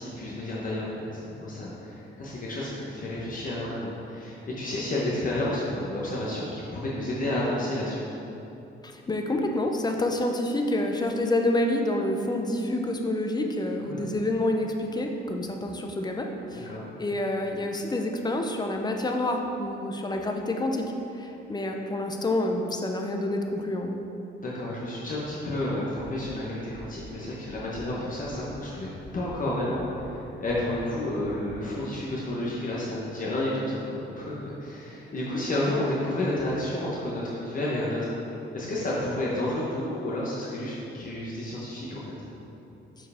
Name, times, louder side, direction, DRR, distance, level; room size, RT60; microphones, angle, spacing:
voice 1, 0.0-8.1 13.8-14.0 16.5-16.9 24.4-28.9 29.1-38.1 38.5-42.0, left 1 dB, 45° left, -6 dB, 1.0 m, -31 dB
voice 2, 8.8-16.7 17.0-20.9 21.1-24.0, left 1 dB, 20° left, 3 dB, 0.6 m, -28 dB
sound 1, 26.0-26.3 26.7-27.1 27.5-27.8 28.2-28.6 29.0-29.3 29.7-30.1 30.5-30.8 31.2-31.5, right 1 dB, 35° right, 1.1 m, -47 dB
6.7 x 4.6 x 3.5 m, 2.9 s
cardioid pair, 90°, 20 cm